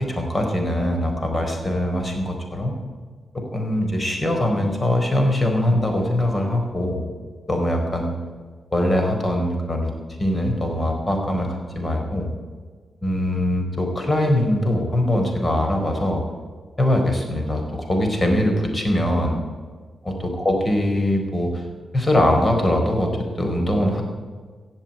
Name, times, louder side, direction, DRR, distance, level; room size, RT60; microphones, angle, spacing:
voice 1, 0.0-2.7 3.5-7.0 7.5-8.1 8.7-9.9 10.2-12.3 13.0-16.2 16.8-19.4 20.4-21.6 21.9-23.1 23.4-24.0, left 1 dB, 30° left, 3 dB, 4.5 m, -22 dB
16.0 x 7.5 x 8.7 m, 1.5 s
supercardioid pair, 50°, 0 cm